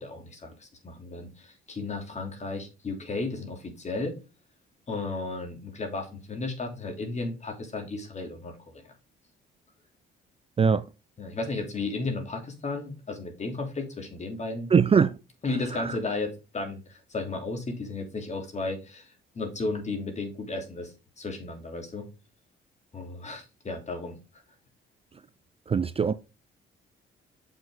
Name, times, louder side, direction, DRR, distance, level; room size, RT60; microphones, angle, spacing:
voice 1, 0.0-4.2 4.9-8.8 11.2-14.7 15.4-22.1 22.9-24.2, left 3 dB, 35° left, 3.0 m, -34 dB
voice 2, 14.7-15.2 15.7-16.0 25.7-26.1, right 6 dB, 30° right, 0.5 m, -22 dB
6.9 x 6.1 x 3.7 m
cardioid pair, 90°, 20 cm